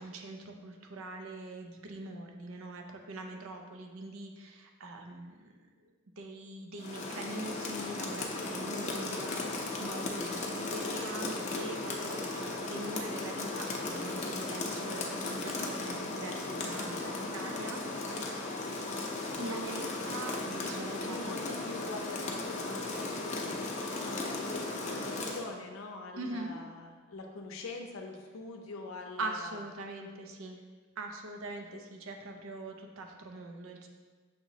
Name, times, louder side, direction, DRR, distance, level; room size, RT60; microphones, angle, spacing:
voice 1, 0.0-5.5 5.8-18.5 19.4-21.4 26.2-26.6 29.2-30.6 31.0-33.9, right 2 dB, 80° right, 3 dB, 0.5 m, -43 dB
Rain, 6.8-25.5, left 2 dB, 35° left, 0.5 m, -36 dB
voice 2, 21.0-23.7 24.0-29.6, left 3 dB, 80° left, 2 dB, 0.6 m, -43 dB
6.4 x 3.0 x 2.7 m, 1.4 s
head